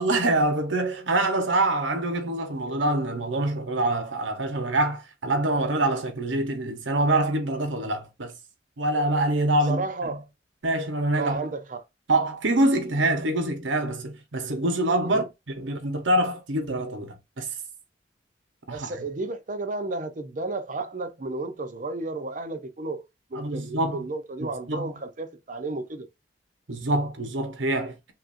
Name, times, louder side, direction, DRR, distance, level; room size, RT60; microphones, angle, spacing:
voice 1, 0.0-8.3 8.8-10.2 10.6-11.5 12.1-17.5 18.7-18.9 23.3-24.0 24.4-24.9 26.7-28.1, right 1 dB, 85° right, 1.0 m, -25 dB
voice 2, 9.7-10.3 11.2-11.8 15.0-15.2 18.7-23.0 23.3-26.1, right 3 dB, 45° right, 0.6 m, -32 dB
5.8 x 2.6 x 2.5 m
head